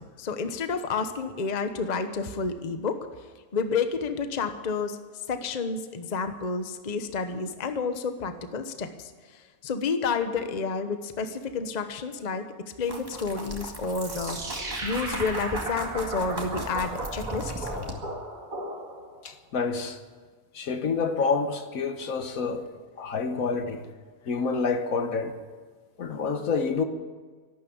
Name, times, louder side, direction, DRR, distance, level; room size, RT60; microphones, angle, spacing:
voice 1, 0.0-3.1 3.5-5.0 5.3-12.5 12.8-17.7, left 4 dB, 35° left, 0.9 m, -30 dB
sound 1, 12.9-17.9, right 1 dB, 15° right, 2.0 m, -38 dB
sound 2, 13.9-19.2, right 2 dB, 65° right, 2.7 m, -36 dB
voice 2, 17.7-18.1 19.2-20.0 20.5-22.7 23.0-23.8 24.3-25.4 26.0-26.8, left 4 dB, 65° left, 1.5 m, -28 dB
12.5 x 12.5 x 8.6 m
omnidirectional pair, 1.6 m